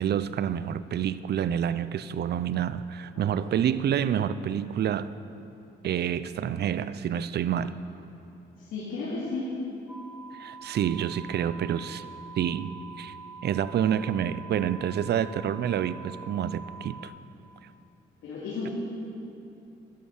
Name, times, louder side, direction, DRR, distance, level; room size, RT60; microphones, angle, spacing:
voice 1, 0.0-5.1 5.8-7.7 10.3-12.0 12.4-13.1 13.4-17.1, right 9 dB, 55° right, 15 dB, 0.5 m, -28 dB
voice 2, 3.2-3.5 8.5-9.5 18.2-18.7, left 3 dB, 80° left, -7 dB, 3.0 m, -34 dB
sound 1, 9.9-17.1, right 5 dB, 5° right, 1.3 m, -45 dB
11.5 x 11.5 x 7.2 m, 2.8 s
cardioid pair, 90°, 20 cm